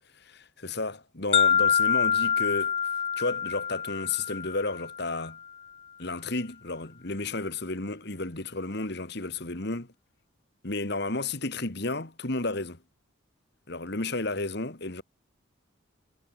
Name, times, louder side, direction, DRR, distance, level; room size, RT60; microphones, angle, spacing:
voice 1, 0.2-2.7 3.2-5.4 6.0-9.9 10.6-12.8 13.7-15.0, left 2 dB, 50° left, 2.0 m, -32 dB
sound 1, 1.3-5.3, left 7 dB, 30° left, 0.6 m, -26 dB
head